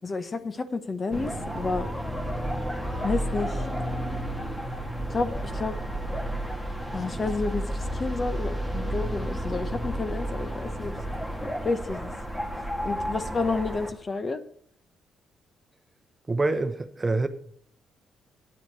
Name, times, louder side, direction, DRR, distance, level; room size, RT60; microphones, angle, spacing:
voice 1, 0.0-1.9 3.0-3.7 5.1-5.8 6.9-10.9 11.6-12.1 12.8-14.4, left 3 dB, 35° left, 0.9 m, -30 dB
sound 1, 1.1-13.9, right 1 dB, 10° left, 1.8 m, -31 dB
voice 2, 16.3-17.3, right 2 dB, 25° right, 0.9 m, -25 dB
9.7 x 7.1 x 6.0 m
cardioid pair, 90°, 0 cm